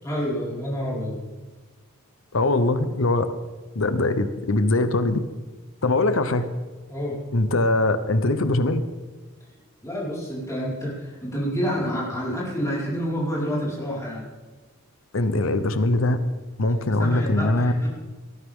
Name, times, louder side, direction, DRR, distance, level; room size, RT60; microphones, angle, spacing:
voice 1, 0.0-1.2 6.9-7.2 9.8-14.2 17.0-17.9, equal, 15° left, -7 dB, 5.1 m, -28 dB
voice 2, 2.3-3.3 3.7-5.2 5.8-6.4 7.3-8.8 15.1-16.2 16.6-17.7, left 2 dB, 75° left, 11 dB, 0.9 m, -21 dB
19.0 x 13.5 x 3.7 m, 1.3 s
head